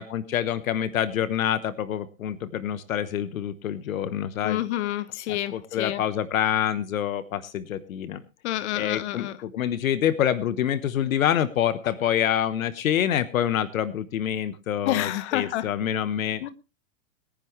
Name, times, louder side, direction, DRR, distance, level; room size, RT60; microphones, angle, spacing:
voice 1, 0.0-4.6 5.3-8.2 8.7-16.5, left 10 dB, 80° left, 1.2 m, -26 dB
voice 2, 4.4-6.0 8.4-9.3 14.8-15.7 16.4-16.5, left 14 dB, 55° left, 1.4 m, -28 dB
21.5 x 10.0 x 3.2 m
hypercardioid pair, 135°, 40 cm